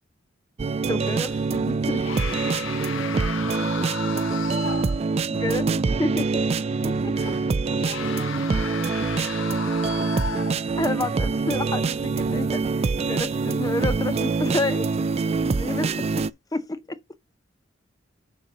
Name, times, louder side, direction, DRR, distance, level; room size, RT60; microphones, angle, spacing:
sound 1, 0.6-16.3, right 4 dB, 30° right, 0.3 m, -25 dB
voice 1, 0.9-2.1 5.3-6.5 6.8-7.1 10.8-14.9 15.4-16.2 16.5-17.0, left 2 dB, 20° left, 0.6 m, -30 dB
sound 2, 1.0-1.5 1.9-5.1 5.5-5.6 7.2-10.9 11.5-11.8, left 7 dB, 75° left, 0.5 m, -35 dB
6.7 x 4.1 x 5.9 m
head